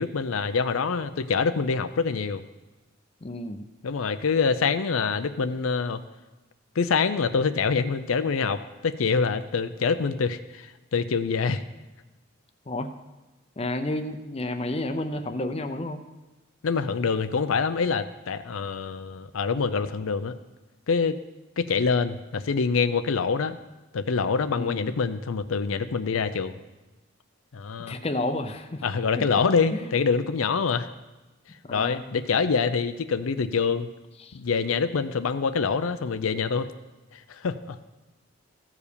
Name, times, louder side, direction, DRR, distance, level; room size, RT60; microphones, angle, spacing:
voice 1, 0.0-2.4 3.8-6.0 6.8-11.6 16.6-20.4 20.9-21.2 21.6-23.6 23.9-26.6 27.5-28.0 28.8-30.9 31.7-33.9 34.3-36.7 37.1-37.8, left 5 dB, 90° left, 11 dB, 0.5 m, -25 dB
voice 2, 3.2-3.6 12.7-12.9 13.6-16.0 24.5-24.9 27.9-28.8 29.2-29.3 29.7-29.9 31.6-32.2 34.2-34.4, left 1 dB, 30° left, 8 dB, 0.6 m, -31 dB
14.5 x 4.9 x 6.8 m, 1.1 s
head